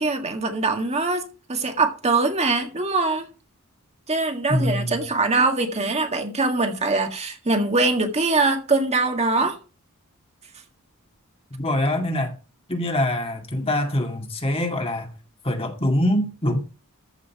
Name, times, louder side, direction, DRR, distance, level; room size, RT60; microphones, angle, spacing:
voice 1, 0.0-3.3 4.1-9.6, right 3 dB, 30° right, 1.8 m, -22 dB
voice 2, 4.5-5.1 11.5-12.3 12.7-15.1 15.4-16.6, left 1 dB, 25° left, 2.1 m, -24 dB
14.5 x 5.6 x 5.8 m
head